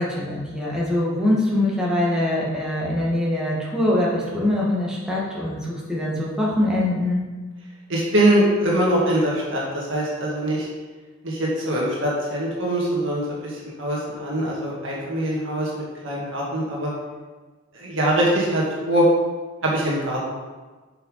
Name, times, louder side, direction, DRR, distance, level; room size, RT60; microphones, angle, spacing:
voice 1, 0.0-7.2, left 1 dB, 5° right, -6 dB, 1.9 m, -23 dB
voice 2, 7.9-10.7 11.2-16.9 17.7-19.0 19.6-20.3, right 1 dB, 65° right, -4 dB, 1.8 m, -23 dB
7.8 x 5.7 x 4.9 m, 1.3 s
head